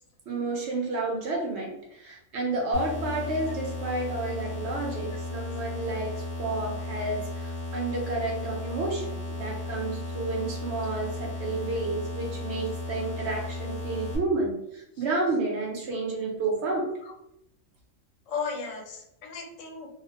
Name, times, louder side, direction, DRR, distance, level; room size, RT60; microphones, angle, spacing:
voice 1, 0.3-16.9, right 2 dB, 65° right, 0 dB, 0.8 m, -31 dB
sound 1, 2.7-14.2, left 2 dB, 30° left, 0.7 m, -35 dB
voice 2, 18.3-19.9, left 5 dB, 75° left, 1 dB, 0.9 m, -36 dB
2.4 x 2.0 x 2.6 m, 0.80 s
omnidirectional pair, 1.4 m